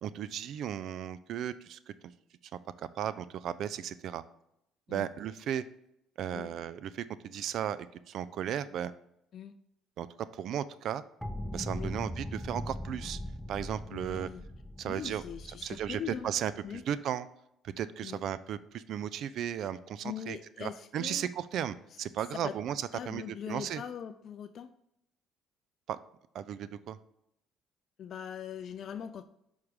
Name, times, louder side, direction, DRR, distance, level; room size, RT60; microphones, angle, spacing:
voice 1, 0.0-1.9 3.0-4.2 4.9-5.6 6.2-8.9 10.0-10.1 10.4-11.0 11.5-13.2 13.5-14.3 14.8-17.3 17.8-23.8 25.9-26.0 26.3-27.0, right 9 dB, 65° right, 15 dB, 0.3 m, -35 dB
sound 1, 11.2-16.9, equal, 5° left, 0.6 m, -40 dB
voice 2, 13.9-14.4 14.8-16.3 16.6-16.8 18.0-18.2 20.0-21.2 21.9-22.0 22.4-22.6 22.9-24.7 28.0-29.3, left 8 dB, 55° left, 9 dB, 0.3 m, -41 dB
6.0 x 3.7 x 4.7 m, 0.79 s
hypercardioid pair, 65°, 0 cm